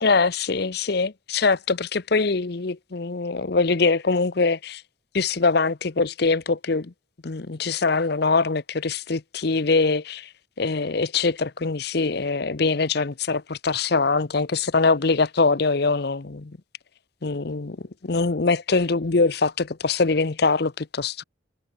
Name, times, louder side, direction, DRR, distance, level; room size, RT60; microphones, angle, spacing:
voice 1, 0.0-4.8 5.1-6.9 7.2-10.3 10.6-16.5 17.2-17.8 18.0-21.2, left 4 dB, 55° left, 0.7 m, -23 dB
head